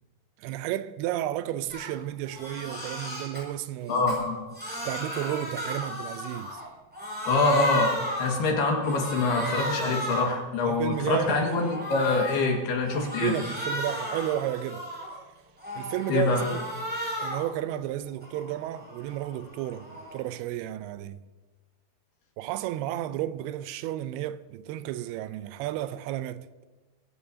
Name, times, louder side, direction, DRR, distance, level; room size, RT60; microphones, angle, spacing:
voice 1, 0.4-4.0 4.9-6.6 10.7-11.4 12.5-12.6 13.0-14.9 15.8-16.7 17.2-21.2 22.4-26.4, right 13 dB, 85° right, 2.6 m, -32 dB
Crying sobbing, 1.7-1.9 2.2-3.4 3.9-6.7 6.9-8.5 8.8-10.4 10.8-12.5 12.9-15.2 15.6-17.5 17.9-20.3, equal, ahead, 5.9 m, -35 dB
voice 2, 3.9-4.4 7.2-13.3 16.1-16.4, left 3 dB, 75° left, 3.9 m, -25 dB
23.0 x 14.0 x 2.8 m
omnidirectional pair, 4.6 m